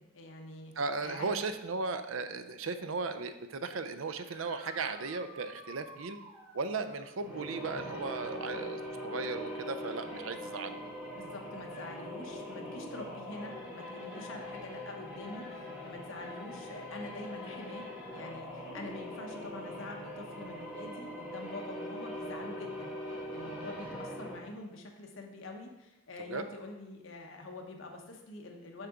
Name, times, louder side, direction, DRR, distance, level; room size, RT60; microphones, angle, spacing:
voice 1, 0.0-0.7 1.0-1.3 8.2-8.8 11.2-17.8 18.1-28.9, left 2 dB, 70° left, 2 dB, 1.1 m, -46 dB
voice 2, 0.8-6.2 6.5-10.8 26.3-26.4, right 4 dB, 80° right, 10 dB, 0.5 m, -36 dB
sound 1, 4.1-7.1 10.4-10.5 12.5-12.6 18.9-19.0, equal, 25° right, 1.9 m, -52 dB
sound 2, 7.1-24.6, equal, 5° right, 2.3 m, -42 dB
6.7 x 5.9 x 3.8 m, 0.97 s
head